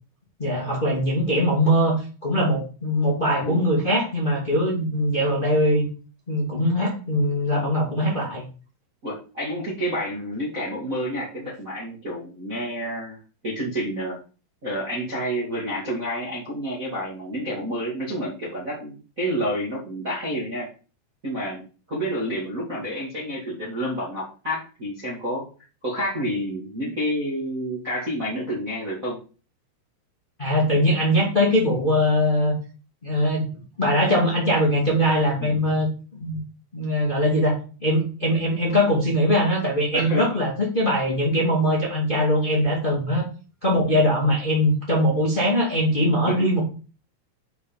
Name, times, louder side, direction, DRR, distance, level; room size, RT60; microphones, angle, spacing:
voice 1, 0.4-5.8 6.3-8.4 30.4-32.5 33.0-33.5 33.8-36.4 36.7-43.3 43.6-46.6, equal, 30° left, -4 dB, 1.0 m, -21 dB
voice 2, 9.0-13.2 13.4-14.2 14.6-20.7 21.2-21.6 21.9-25.4 25.8-29.2 35.4-35.6 39.9-40.2 46.2-46.5, equal, 85° right, -5 dB, 0.7 m, -29 dB
8.1 x 5.3 x 5.2 m, 0.36 s
omnidirectional pair, 5.8 m